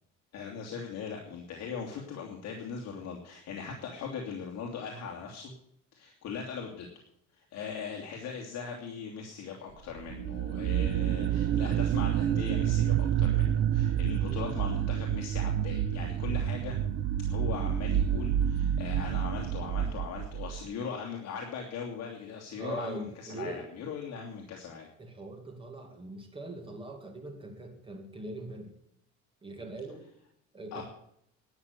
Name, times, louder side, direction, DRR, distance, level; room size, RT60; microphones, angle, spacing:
voice 1, 0.3-5.5 5.9-6.9 7.3-16.8 17.3-24.9 30.7-30.8, left 6 dB, 60° left, 0 dB, 2.6 m, -39 dB
sound 1, 10.0-20.6, right 10 dB, 40° right, 0.5 m, -28 dB
voice 2, 22.6-23.6 25.0-28.7 29.4-30.1 30.5-30.8, right 2 dB, 15° right, 4 dB, 2.3 m, -41 dB
12.5 x 9.4 x 8.1 m, 0.72 s
cardioid pair, 170°, 29 cm